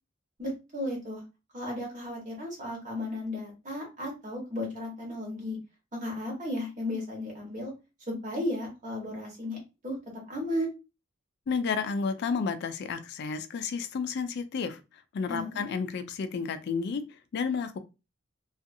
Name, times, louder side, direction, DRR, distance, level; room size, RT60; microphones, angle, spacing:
voice 1, 0.4-1.2 1.5-5.6 5.9-7.7 8.2-9.6 9.8-10.0 10.3-10.7 15.3-15.6, left 1 dB, 40° right, -1 dB, 1.2 m, -34 dB
voice 2, 11.5-17.8, left 5 dB, 55° left, 10 dB, 0.3 m, -31 dB
2.6 x 2.3 x 2.6 m, 0.28 s
head